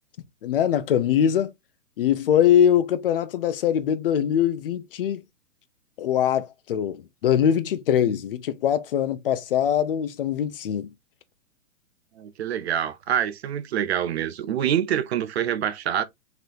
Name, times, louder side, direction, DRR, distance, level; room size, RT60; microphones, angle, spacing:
voice 1, 0.4-1.5 2.0-5.2 6.0-10.9, left 9 dB, 40° left, 0.7 m, -22 dB
voice 2, 12.2-16.0, right 9 dB, 50° right, 0.7 m, -26 dB
3.9 x 3.5 x 2.8 m
hypercardioid pair, 160°, 41 cm